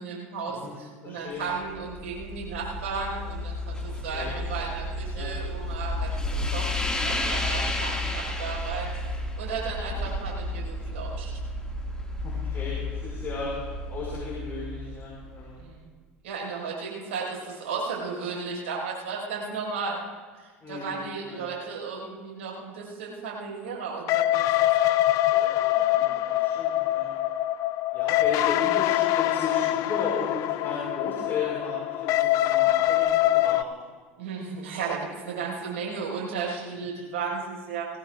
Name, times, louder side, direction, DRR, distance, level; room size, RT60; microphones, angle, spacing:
voice 1, 0.0-11.3 15.6-15.9 16.2-20.0 20.3-25.0 34.2-37.9, right 5 dB, 75° right, -4 dB, 5.2 m, -34 dB
voice 2, 1.0-1.4 3.9-4.4 5.1-5.3 6.2-6.5 12.2-13.5 13.9-15.6 20.6-21.0 21.2-21.4 25.3-25.5 25.9-27.1 27.9-33.7, left 4 dB, 35° left, -6 dB, 5.5 m, -35 dB
sound 1, 1.5-15.7, left 1 dB, 10° left, 2.1 m, -32 dB
sound 2, 24.1-33.6, left 15 dB, 55° left, 0.5 m, -24 dB
20.0 x 17.5 x 2.5 m, 1.5 s
hypercardioid pair, 75°, 7 cm